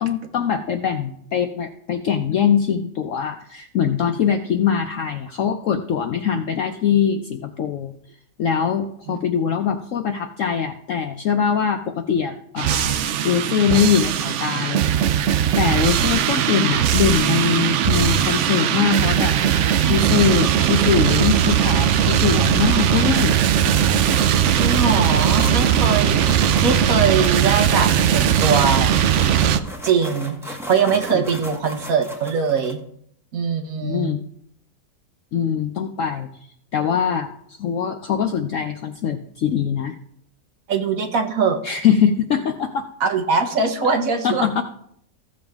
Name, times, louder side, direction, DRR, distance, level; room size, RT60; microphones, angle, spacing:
voice 1, 0.0-7.9 8.4-14.8 15.6-19.4 19.8-23.4 31.1-31.2 33.8-34.2 35.3-36.3 36.7-40.0 41.6-42.9 43.8-43.9 44.2-44.6, left 7 dB, 70° left, 6 dB, 0.7 m, -22 dB
sound 1, 12.6-29.6, right 9 dB, 85° right, 0.6 m, -19 dB
sound 2, 23.5-32.7, equal, ahead, 0.9 m, -36 dB
voice 2, 24.5-29.0 29.8-32.8 33.3-34.2 40.7-41.6 43.0-44.4, right 5 dB, 55° right, 6 dB, 1.2 m, -22 dB
15.0 x 7.1 x 3.5 m, 0.69 s
omnidirectional pair, 1.9 m